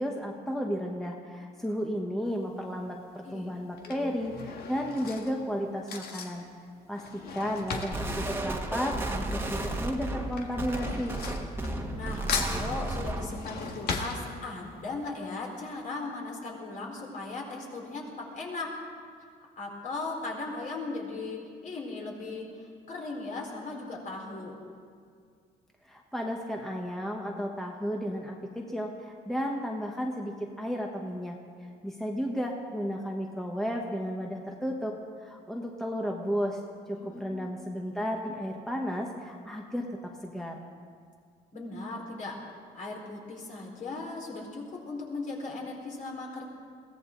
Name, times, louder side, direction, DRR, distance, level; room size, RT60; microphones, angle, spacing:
voice 1, 0.0-6.4 6.9-7.0 7.3-11.1 25.8-34.9 35.2-36.6 36.9-40.6, equal, ahead, 1 dB, 1.2 m, -33 dB
Drawer open or close / Cutlery silverware, 2.3-2.7 3.5-9.4 9.7-12.0 12.3-14.8 15.2-15.3 15.5-15.6, left 5 dB, 65° left, 1.9 m, -37 dB
voice 2, 3.8-4.4 11.7-18.8 19.6-24.5 36.9-37.5 41.5-42.4 42.7-46.4, left 3 dB, 50° left, -1 dB, 4.4 m, -38 dB
sound 1, 7.9-13.4, right 2 dB, 15° right, 1.6 m, -33 dB
22.0 x 16.5 x 3.9 m, 2.1 s
cardioid pair, 110°, 17 cm